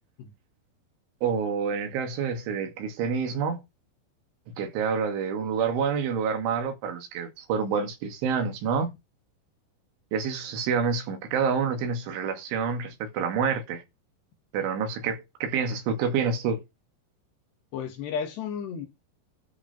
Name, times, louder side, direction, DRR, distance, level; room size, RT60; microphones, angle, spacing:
voice 1, 1.2-3.6 4.6-8.9 10.1-13.8 14.5-16.6, right 6 dB, 80° right, 4.5 m, -28 dB
voice 2, 17.7-18.9, left 7 dB, 65° left, 3.6 m, -33 dB
13.0 x 5.0 x 5.4 m
omnidirectional pair, 5.5 m